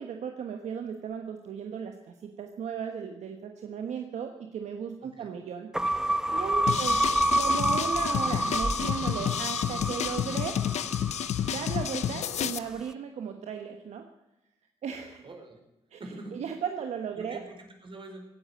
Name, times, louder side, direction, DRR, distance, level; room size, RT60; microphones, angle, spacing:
voice 1, 0.0-5.7 6.3-7.0 7.4-10.6 11.5-14.0 14.8-15.2 15.9-16.0 16.3-17.4, right 7 dB, 75° right, 5 dB, 1.3 m, -36 dB
voice 2, 5.0-5.3 6.7-7.0 11.4-11.6 15.2-15.6 16.0-16.4 17.2-18.3, right 2 dB, 45° right, 4 dB, 4.6 m, -45 dB
sound 1, 5.7-12.1, right 1 dB, 5° right, 0.5 m, -28 dB
sound 2, 6.7-12.6, left 10 dB, 75° left, 0.8 m, -30 dB
16.0 x 10.5 x 7.8 m, 0.93 s
supercardioid pair, 60°, 12 cm